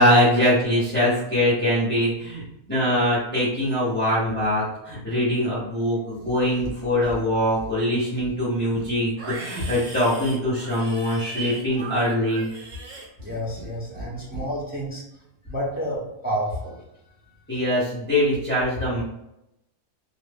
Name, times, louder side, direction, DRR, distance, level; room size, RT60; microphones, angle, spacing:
voice 1, 0.0-12.5 17.5-19.0, equal, 10° left, -11 dB, 1.1 m, -22 dB
Livestock farm animals working animals, 6.1-6.7 7.0-7.7 8.1-13.7 13.9-14.5, right 2 dB, 45° right, 0.7 m, -38 dB
voice 2, 13.2-15.0 15.4-16.8, equal, 15° right, -5 dB, 0.3 m, -30 dB
3.0 x 2.5 x 3.5 m, 0.86 s
omnidirectional pair, 1.7 m